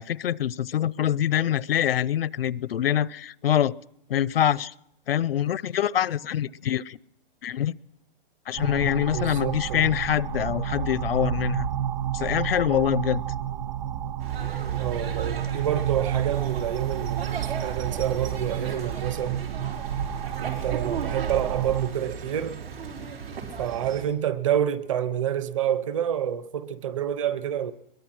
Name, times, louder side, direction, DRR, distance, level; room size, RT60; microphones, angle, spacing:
voice 1, 0.0-3.8 4.1-4.7 5.1-7.0 7.4-7.7 8.5-11.7 12.1-13.2, left 10 dB, 80° left, 0.7 m, -25 dB
sound 1, 8.6-21.9, right 11 dB, 50° right, 2.0 m, -30 dB
voice 2, 9.1-9.9 14.8-19.4 20.4-22.6 23.6-27.7, right 9 dB, 35° right, 0.9 m, -28 dB
sound 2, 14.2-24.1, right 6 dB, 85° right, 5.5 m, -36 dB
22.0 x 21.5 x 6.1 m
hypercardioid pair, 175°, 29 cm